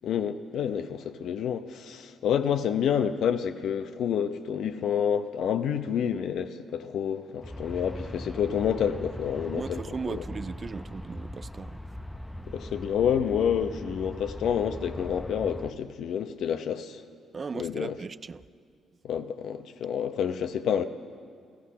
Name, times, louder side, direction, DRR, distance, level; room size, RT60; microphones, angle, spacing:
voice 1, 0.0-9.8 10.1-10.2 12.5-17.0 17.6-17.9 19.0-20.8, left 8 dB, 75° left, 0.8 m, -28 dB
Aircraft, 7.4-15.7, equal, 5° left, 0.6 m, -40 dB
voice 2, 9.5-11.8 17.3-18.4, right 5 dB, 35° right, 0.3 m, -37 dB
15.5 x 14.5 x 5.7 m
cardioid pair, 90°, 0 cm